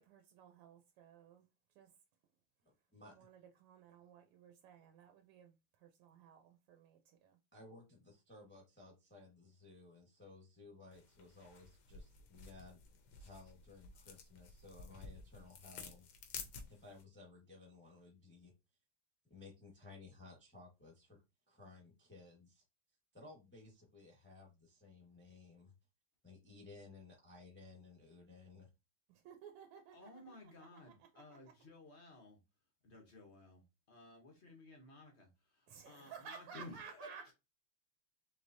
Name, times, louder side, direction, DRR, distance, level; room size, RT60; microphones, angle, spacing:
voice 1, 0.0-1.5 1.7-1.9 3.1-7.4 29.1-31.2 35.7-37.3, right 7 dB, 85° right, 1.6 m, -56 dB
voice 2, 2.6-3.2 7.5-12.8 13.2-16.1 16.7-18.5 19.3-21.2 21.5-22.6 23.1-25.7 26.2-28.7, left 3 dB, 10° left, 0.7 m, -58 dB
sound 1, 10.9-17.0, left 5 dB, 70° left, 1.5 m, -53 dB
voice 3, 29.9-32.4 32.8-37.3, left 2 dB, 50° left, 0.8 m, -56 dB
4.7 x 3.3 x 2.6 m
omnidirectional pair, 2.4 m